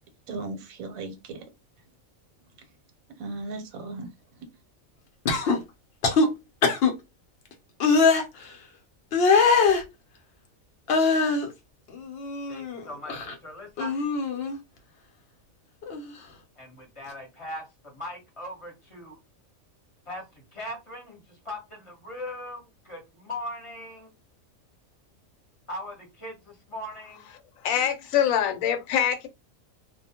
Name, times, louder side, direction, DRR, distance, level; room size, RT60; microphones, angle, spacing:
voice 1, 0.3-1.5 2.6-2.7 3.2-4.5, right 3 dB, 85° right, 1.1 m, -37 dB
sound 1, 5.3-5.6 6.0-6.3 6.6-6.9 7.8-8.2 9.1-9.8 10.9-11.5 11.9-12.8 13.1-13.3 13.8-14.6 15.8-16.0, left 4 dB, 60° left, 0.7 m, -22 dB
voice 2, 12.5-14.0 16.6-19.2 20.1-24.1 25.7-27.2, left 1 dB, 25° left, 0.9 m, -39 dB
voice 3, 27.6-29.3, left 9 dB, 80° left, 1.0 m, -24 dB
2.3 x 2.1 x 2.8 m
omnidirectional pair, 1.4 m